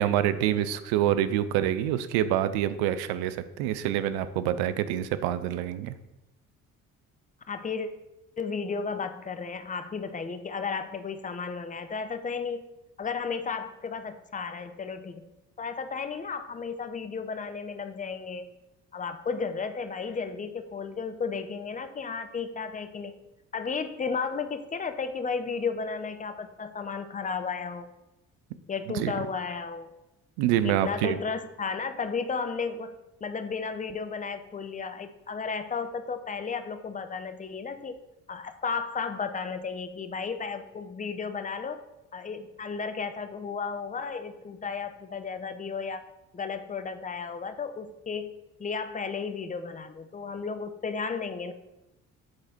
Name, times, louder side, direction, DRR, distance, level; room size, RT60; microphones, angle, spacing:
voice 1, 0.0-5.9 28.9-29.1 30.4-31.2, right 11 dB, 70° right, 13 dB, 0.6 m, -26 dB
voice 2, 7.5-7.9 8.4-12.6 13.0-15.2 15.6-18.5 18.9-23.2 23.5-27.9 28.7-29.9 30.6-38.0 38.3-41.8 42.1-46.0 46.3-51.5, left 5 dB, 20° left, 9 dB, 0.6 m, -33 dB
7.8 x 4.0 x 4.3 m, 0.96 s
hypercardioid pair, 55°, 40 cm